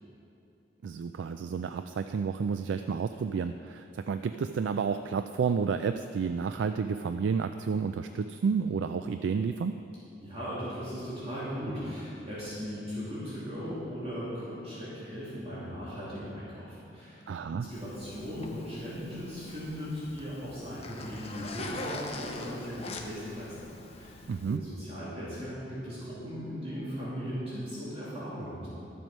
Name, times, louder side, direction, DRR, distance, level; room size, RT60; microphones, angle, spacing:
voice 1, 0.8-9.8 17.3-17.7 24.3-24.6, right 5 dB, 85° right, 9 dB, 0.3 m, -31 dB
voice 2, 10.2-23.6 23.9-24.2 24.4-28.7, equal, 35° right, -10 dB, 2.5 m, -38 dB
Zipper (clothing), 17.7-24.6, left 2 dB, 35° left, 0.8 m, -43 dB
12.0 x 7.6 x 5.3 m, 2.7 s
head